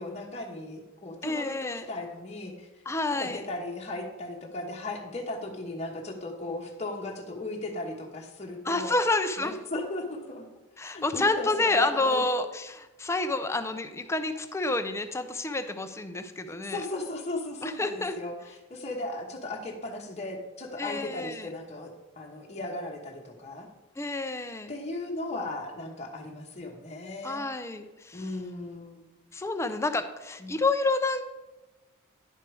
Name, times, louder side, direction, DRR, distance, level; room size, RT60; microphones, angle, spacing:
voice 1, 0.0-2.7 3.1-8.9 9.4-10.5 10.9-12.3 16.5-23.7 24.7-27.5 28.1-29.0 30.4-30.6, left 2 dB, 30° left, -1 dB, 1.0 m, -36 dB
voice 2, 1.2-1.8 2.9-3.4 8.6-9.6 10.8-16.8 17.6-18.1 20.8-21.5 24.0-24.7 27.2-28.3 29.3-31.3, left 2 dB, 15° left, 8 dB, 0.5 m, -29 dB
10.5 x 4.6 x 4.7 m, 1.1 s
head